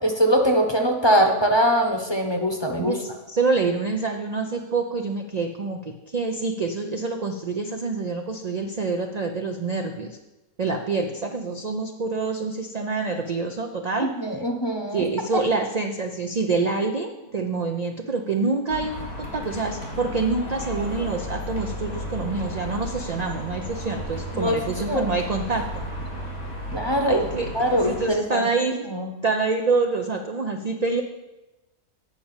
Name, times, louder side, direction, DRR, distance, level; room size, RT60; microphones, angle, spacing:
voice 1, 0.0-3.0 14.0-15.0 24.3-24.5 24.9-25.1 26.7-27.2 27.5-28.5 28.9-29.1, equal, 20° left, 2 dB, 0.8 m, -22 dB
voice 2, 2.8-10.2 10.6-14.1 14.9-25.8 27.1-28.9 29.2-31.0, right 3 dB, 60° right, 3 dB, 0.4 m, -26 dB
sound 1, 18.7-28.1, equal, 90° left, 2.8 m, -34 dB
9.4 x 5.1 x 7.1 m, 1.0 s
omnidirectional pair, 1.6 m